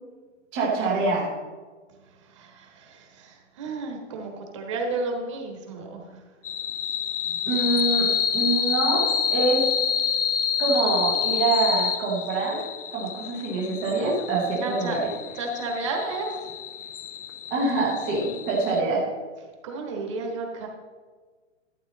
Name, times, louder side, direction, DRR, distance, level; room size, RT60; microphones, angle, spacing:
voice 1, 0.5-1.3 7.4-9.6 10.6-12.6 12.9-15.1 17.5-19.0, right 3 dB, 5° right, -4 dB, 0.6 m, -25 dB
voice 2, 2.2-6.2 7.2-7.4 14.6-15.0 15.3-16.5 19.6-20.7, right 3 dB, 25° right, 1 dB, 1.3 m, -32 dB
sound 1, 6.4-18.8, left 7 dB, 70° left, 0.9 m, -28 dB
12.0 x 8.5 x 4.0 m, 1.4 s
hypercardioid pair, 175°, 37 cm